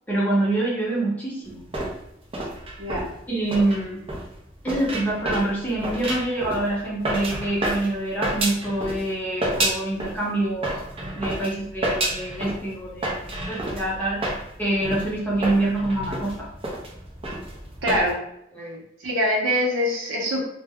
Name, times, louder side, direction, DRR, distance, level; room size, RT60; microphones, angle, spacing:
voice 1, 0.1-1.6 3.3-4.0 4.6-10.8 11.1-14.2 14.6-16.5 18.5-18.8, right 2 dB, 10° left, -6 dB, 0.7 m, -26 dB
sound 1, 1.5-9.1 9.4-10.2 10.6-18.1, right 1 dB, 30° right, 0.5 m, -30 dB
voice 2, 2.8-3.1 17.8-18.2 19.0-20.5, equal, 80° right, -2 dB, 0.7 m, -23 dB
2.2 x 2.1 x 3.5 m, 0.76 s
head